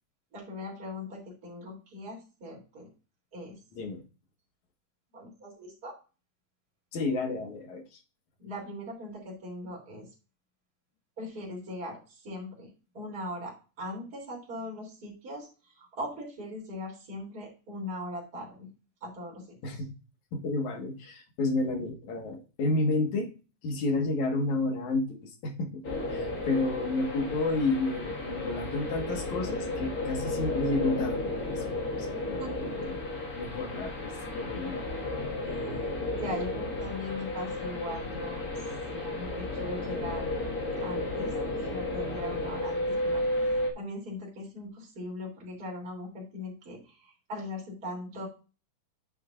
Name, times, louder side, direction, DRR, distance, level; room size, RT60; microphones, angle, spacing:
voice 1, 0.3-2.9 3.3-3.6 5.1-5.9 8.4-10.1 11.2-12.7 12.9-18.7 19.0-19.8 32.4-32.9 35.4-40.3 40.8-48.3, left 1 dB, 30° right, -3 dB, 3.6 m, -40 dB
voice 2, 3.7-4.0 6.9-8.0 19.6-19.9 20.3-23.3 23.6-25.8 26.1-32.9 33.4-34.8, left 2 dB, 65° left, 4 dB, 3.0 m, -31 dB
sound 1, 25.8-43.7, left 2 dB, 30° left, 2.0 m, -33 dB
9.7 x 7.7 x 2.6 m, 0.32 s
omnidirectional pair, 3.8 m